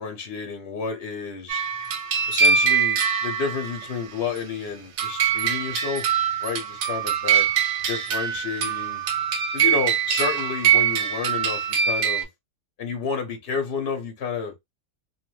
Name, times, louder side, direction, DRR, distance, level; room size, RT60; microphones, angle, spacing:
voice 1, 0.0-1.6 2.3-6.1 6.4-7.5 7.9-9.0 9.5-12.3 12.8-14.5, left 5 dB, 50° left, 0.9 m, -30 dB
sound 1, 1.5-3.9 5.0-12.2, right 7 dB, 90° right, 1.2 m, -23 dB
2.8 x 2.0 x 3.0 m
omnidirectional pair, 1.7 m